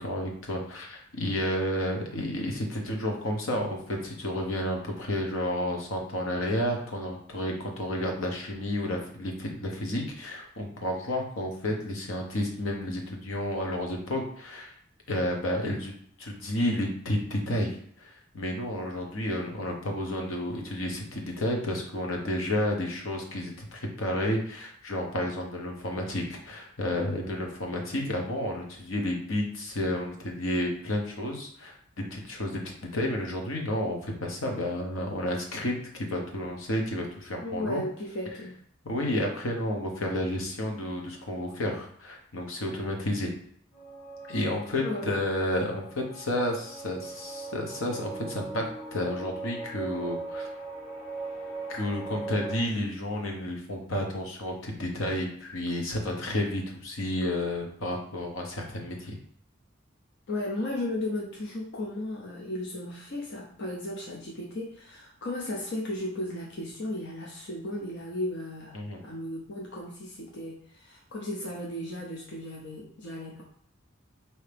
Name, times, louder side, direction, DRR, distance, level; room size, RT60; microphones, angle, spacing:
voice 1, 0.0-14.7 15.1-15.9 16.2-31.8 32.1-32.6 32.9-37.8 38.8-43.3 44.3-48.6 48.9-50.5 51.7-59.2 68.7-69.0, left 1 dB, 80° left, 1 dB, 0.9 m, -31 dB
voice 2, 37.4-38.5 44.8-45.0 60.3-73.4, left 1 dB, 60° left, -2 dB, 0.7 m, -35 dB
sound 1, 43.7-52.6, right 3 dB, 40° left, 1.5 m, -40 dB
4.6 x 2.8 x 3.4 m, 0.64 s
head